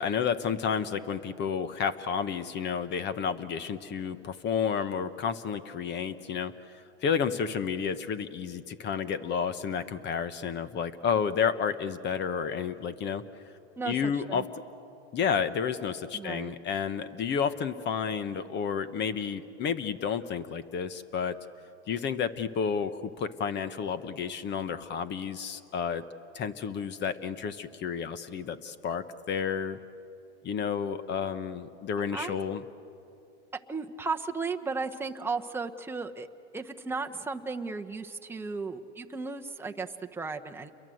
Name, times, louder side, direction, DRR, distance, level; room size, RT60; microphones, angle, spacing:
voice 1, 0.0-6.5 7.0-13.2 13.8-14.5 15.1-21.4 21.9-26.0 26.3-29.8 30.4-32.6, left 7 dB, 30° left, 13 dB, 1.2 m, -31 dB
voice 2, 13.8-14.4 16.1-16.5 32.1-32.4 33.5-36.3 36.5-40.7, right 4 dB, 5° right, 3 dB, 1.0 m, -35 dB
29.5 x 22.5 x 7.9 m, 2.7 s
supercardioid pair, 125°, 34 cm